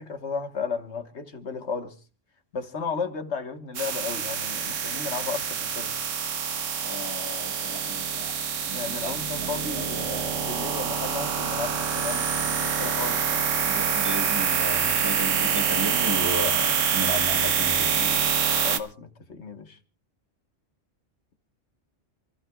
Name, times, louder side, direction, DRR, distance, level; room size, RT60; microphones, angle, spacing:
voice 1, 0.0-2.0 2.5-6.0 8.7-13.4 18.5-19.8, left 5 dB, 65° left, 1.6 m, -34 dB
sound 1, 3.7-18.8, right 7 dB, 90° right, 1.5 m, -26 dB
voice 2, 6.8-10.4 13.7-18.6, right 1 dB, 20° right, 1.2 m, -35 dB
28.0 x 15.0 x 2.3 m
omnidirectional pair, 1.3 m